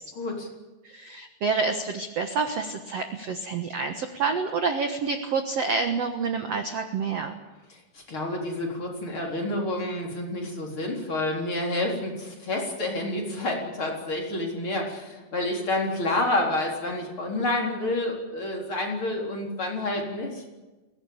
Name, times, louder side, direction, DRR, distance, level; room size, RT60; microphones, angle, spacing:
voice 1, 0.1-0.5 7.9-20.4, left 1 dB, 30° left, -1 dB, 4.4 m, -29 dB
voice 2, 0.8-7.4, right 4 dB, 60° right, 6 dB, 1.8 m, -28 dB
22.0 x 18.0 x 8.9 m, 1.2 s
omnidirectional pair, 4.6 m